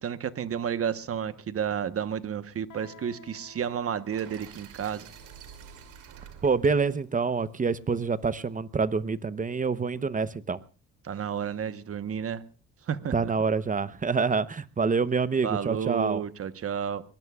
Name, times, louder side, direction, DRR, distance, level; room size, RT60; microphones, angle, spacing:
voice 1, 0.0-5.1 11.0-12.4 12.9-13.3 15.4-17.0, right 8 dB, 50° right, 1.2 m, -31 dB
Guitar, 2.7-8.1, left 4 dB, 65° left, 2.2 m, -55 dB
sound 1, 4.1-8.1, right 8 dB, 90° right, 2.9 m, -49 dB
voice 2, 6.4-10.6 13.1-16.2, right 5 dB, 25° right, 0.9 m, -26 dB
23.5 x 19.0 x 2.4 m
cardioid pair, 90°, 30 cm